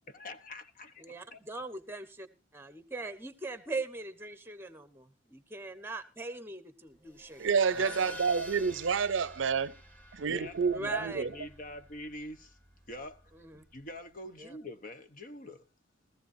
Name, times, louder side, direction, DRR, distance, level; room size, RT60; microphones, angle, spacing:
voice 1, 0.0-1.4 7.7-8.2 10.2-12.6 12.9-15.6, left 2 dB, 45° left, 0.9 m, -45 dB
voice 2, 1.0-2.3 2.5-7.5 10.7-11.2 13.3-13.6 14.4-14.6, right 3 dB, 10° right, 1.0 m, -40 dB
sound 1, 7.0-14.1, equal, 10° left, 2.1 m, -50 dB
voice 3, 7.4-9.7 10.1-11.3, right 5 dB, 65° right, 0.6 m, -29 dB
17.0 x 15.0 x 2.6 m
head